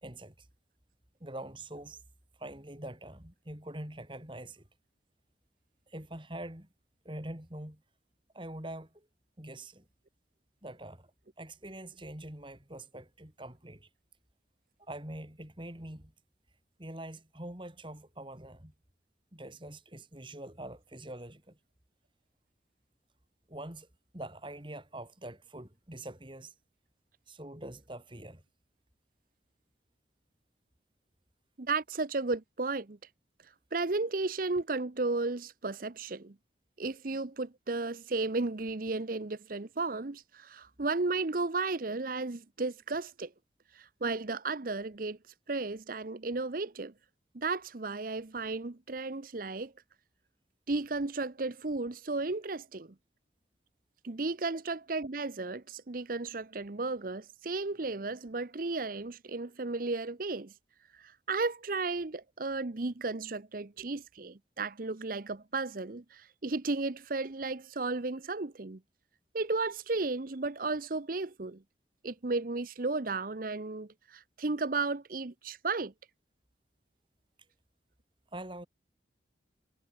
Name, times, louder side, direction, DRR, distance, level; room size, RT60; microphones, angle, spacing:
voice 1, 0.0-0.5 1.2-2.0 2.4-4.7 5.9-6.7 7.0-7.8 8.3-9.1 9.4-9.8 10.6-11.1 11.4-13.9 14.8-16.1 16.8-18.7 19.3-21.6 23.5-23.9 24.1-26.5 27.3-28.4 78.3-78.7, right 1 dB, 25° right, 3.1 m, -44 dB
voice 2, 31.6-33.0 33.7-36.4 36.8-43.3 43.8-45.2 45.5-46.9 47.3-49.7 50.7-52.9 54.0-60.5 61.0-68.8 69.3-71.6 72.0-75.9, right 3 dB, 50° right, 0.8 m, -34 dB
head